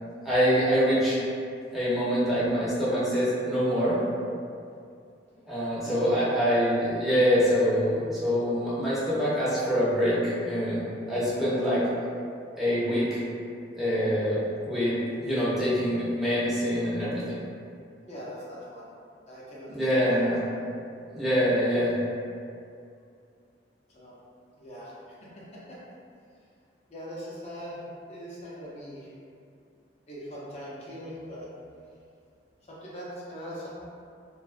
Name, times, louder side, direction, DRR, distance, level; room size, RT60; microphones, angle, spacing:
voice 1, 0.2-1.2 1.7-4.0 5.5-11.9 12.6-13.2 13.8-14.4 14.6-17.4 19.7-20.4 21.1-22.0, equal, ahead, -11 dB, 0.7 m, -25 dB
voice 2, 5.8-6.3 18.0-18.9 19.3-20.2 23.9-24.1 24.6-25.8 26.9-29.1 30.1-31.5 32.7-33.9, equal, 40° left, -7 dB, 0.6 m, -41 dB
2.5 x 2.2 x 2.4 m, 2.4 s
head